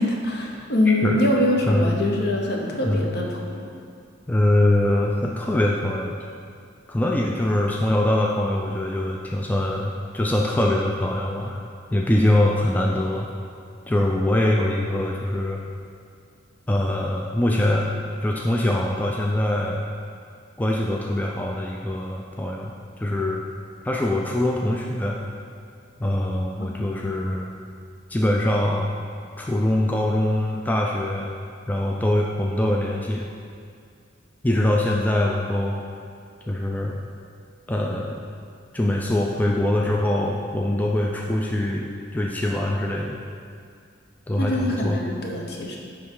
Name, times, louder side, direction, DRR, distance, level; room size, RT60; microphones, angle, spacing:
voice 1, 0.0-3.7 26.6-26.8 44.4-45.8, left 1 dB, 60° left, 0 dB, 0.9 m, -24 dB
voice 2, 0.9-1.2 1.6-2.0 2.8-3.1 4.3-6.2 6.9-11.6 11.9-13.3 13.9-15.6 16.7-17.9 18.2-19.8 20.6-22.7 23.0-23.4 23.8-25.2 26.0-27.5 28.1-28.9 29.4-31.3 31.7-33.3 34.4-35.8 36.5-37.0 37.7-38.3 38.7-43.2 44.3-45.0, left 1 dB, 10° left, -1 dB, 0.3 m, -23 dB
9.6 x 3.4 x 3.8 m, 2.3 s
head